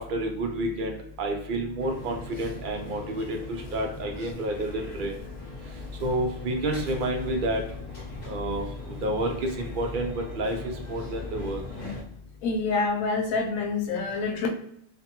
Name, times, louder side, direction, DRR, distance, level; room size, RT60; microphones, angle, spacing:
voice 1, 0.1-3.4 3.7-5.1 6.0-7.6 8.3-10.6 10.9-11.6, right 1 dB, 60° right, 3 dB, 0.5 m, -29 dB
sound 1, 1.8-12.0, left 1 dB, 30° left, 0.8 m, -41 dB
voice 2, 12.4-14.5, left 4 dB, 90° left, 2 dB, 1.0 m, -27 dB
2.5 x 2.2 x 2.8 m, 0.74 s
omnidirectional pair, 1.4 m